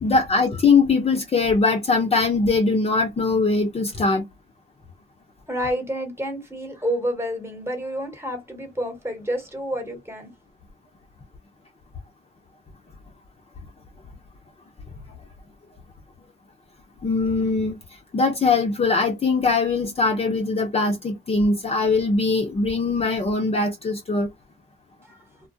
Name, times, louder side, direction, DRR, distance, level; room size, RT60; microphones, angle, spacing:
voice 1, 0.0-4.2 17.0-17.7 18.1-24.3, left 4 dB, 30° left, 0.7 m, -21 dB
voice 2, 5.5-10.3 25.0-25.2, equal, 10° right, 1.2 m, -29 dB
2.2 x 2.2 x 2.6 m
cardioid pair, 90°, 20 cm